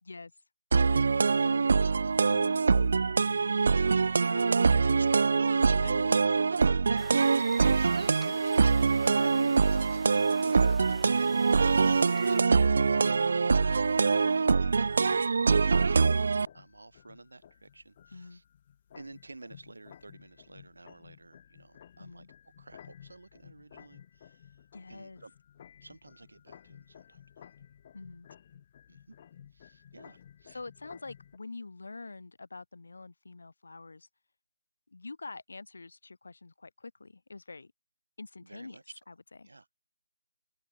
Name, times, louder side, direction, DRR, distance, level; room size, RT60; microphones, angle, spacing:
voice 1, 0.0-0.3 2.3-2.6 4.2-4.9 5.8-6.2 8.2-8.4 9.0-9.9 12.9-13.4 14.4-15.0 18.1-18.4 22.0-22.3 24.7-25.2 27.9-28.3 30.5-34.1 34.9-37.7 38.2-38.8 39.1-39.2 39.4-39.5, left 3 dB, 65° left, 3.3 m, -46 dB
sound 1, 0.7-16.5, right 4 dB, 50° right, 0.3 m, -24 dB
voice 2, 1.2-1.9 3.4-4.6 4.9-6.0 6.3-9.7 10.4-14.9 16.0-18.4 18.9-22.3 22.6-24.6 24.9-25.3 25.8-27.5 28.9-29.2 29.5-30.6 38.4-39.0 39.4-39.7, right 2 dB, 75° right, 5.2 m, -50 dB
sound 2, 7.0-12.4, right 6 dB, 5° right, 1.5 m, -51 dB
sound 3, 12.4-31.4, left 9 dB, 30° left, 0.9 m, -56 dB
open air
figure-of-eight pair, 160°, 0 cm